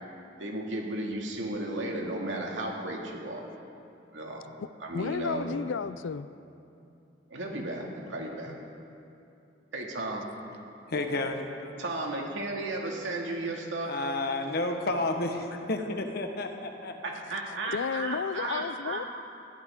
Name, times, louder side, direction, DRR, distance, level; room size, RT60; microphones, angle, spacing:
voice 1, 0.4-3.5 4.1-4.4 4.8-5.5 7.3-8.6 9.7-10.2 11.8-13.9 17.0-19.0, right 2 dB, 90° right, 2.4 m, -34 dB
voice 2, 4.9-6.3 8.5-8.6 17.6-19.0, left 6 dB, 85° left, 0.4 m, -32 dB
voice 3, 10.9-11.4 13.9-17.0, left 2 dB, 60° left, 1.3 m, -31 dB
20.5 x 14.0 x 3.8 m
head